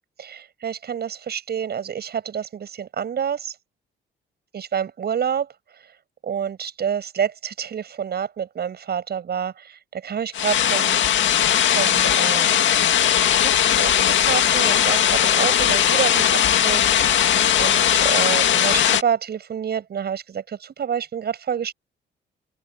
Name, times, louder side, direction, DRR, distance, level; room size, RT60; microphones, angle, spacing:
voice 1, 0.2-3.6 4.5-5.5 6.2-11.0 11.6-12.8 13.3-13.9 14.2-17.3 17.6-21.7, right 8 dB, 55° right, 7.3 m, -28 dB
sound 1, 10.3-19.0, left 10 dB, 70° left, 2.2 m, -18 dB
cardioid pair, 90°, 20 cm